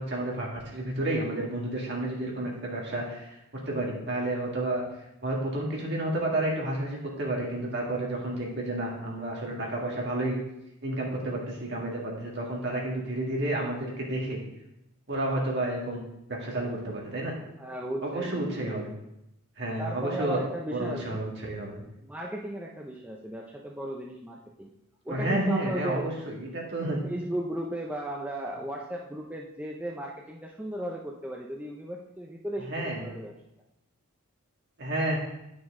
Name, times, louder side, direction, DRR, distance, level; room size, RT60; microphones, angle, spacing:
voice 1, 0.0-3.4 3.6-4.8 5.2-10.4 10.8-14.4 15.1-16.0 16.3-17.3 18.0-18.9 19.6-20.4 20.7-21.8 25.1-27.0 32.7-33.0 34.8-35.2, right 1 dB, 50° right, -2 dB, 2.0 m, -30 dB
voice 2, 17.6-18.8 19.8-21.2 22.0-24.7 25.0-26.1 27.0-33.3, right 1 dB, 5° right, -2 dB, 0.5 m, -36 dB
9.3 x 6.1 x 3.7 m, 0.86 s
head